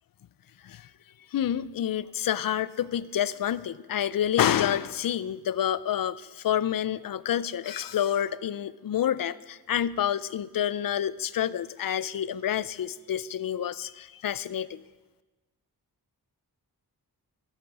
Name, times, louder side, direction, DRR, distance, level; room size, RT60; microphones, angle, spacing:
voice 1, 1.3-14.8, left 10 dB, 60° left, 18 dB, 0.5 m, -28 dB
12.5 x 8.2 x 6.1 m, 1.2 s
wide cardioid pair, 100°, 38 cm